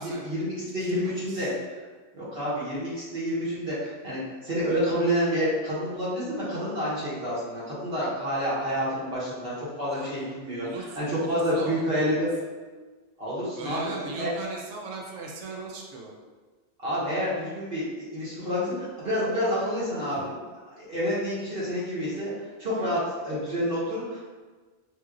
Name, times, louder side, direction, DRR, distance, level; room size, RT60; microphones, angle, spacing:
voice 1, 0.0-1.5 2.1-10.7 11.0-12.3 13.2-13.9 14.2-14.3 16.8-20.3 20.8-22.3 22.6-24.2, equal, 60° right, -9 dB, 1.1 m, -28 dB
voice 2, 0.8-1.5 9.9-10.3 10.6-12.1 13.6-16.1 20.1-20.3, right 3 dB, 85° right, -1 dB, 0.9 m, -39 dB
3.0 x 2.6 x 2.4 m, 1.4 s
omnidirectional pair, 1.2 m